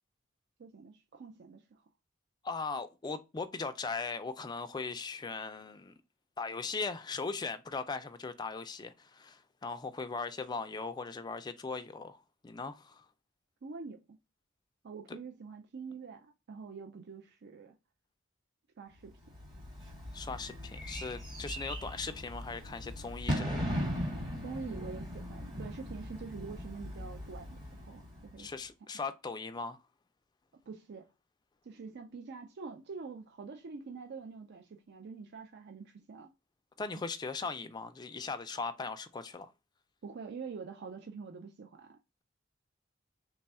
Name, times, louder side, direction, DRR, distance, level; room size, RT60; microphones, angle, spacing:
voice 1, 0.6-1.6 13.6-14.0 14.8-17.7 18.8-19.1 24.4-28.5 30.7-31.0 31.6-36.3 40.0-42.0, right 5 dB, 60° right, 0.4 m, -45 dB
voice 2, 2.4-5.9 6.4-13.1 15.1-15.2 20.1-23.8 28.4-29.8 36.8-39.5, left 4 dB, 20° left, 0.3 m, -39 dB
Bird / Fireworks, 19.3-28.5, equal, 25° right, 1.1 m, -39 dB
3.3 x 2.3 x 4.1 m
head